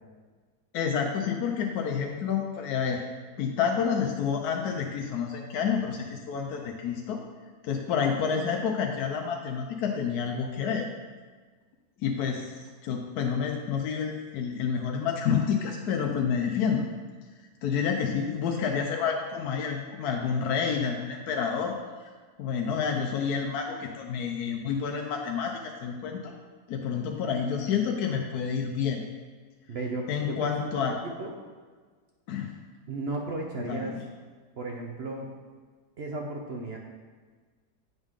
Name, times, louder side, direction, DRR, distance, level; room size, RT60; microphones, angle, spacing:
voice 1, 0.7-3.0 3.4-7.2 7.6-10.9 12.0-12.5 12.8-16.9 17.6-21.8 22.4-26.3 26.7-29.0 30.1-31.0 32.3-32.5 33.7-34.0, left 6 dB, 75° left, 2 dB, 1.1 m, -29 dB
voice 2, 29.7-30.8 31.2-31.3 32.9-33.9 34.6-35.3 36.0-36.8, right 2 dB, 60° right, 1 dB, 0.6 m, -34 dB
8.0 x 5.3 x 3.6 m, 1.5 s
omnidirectional pair, 1.7 m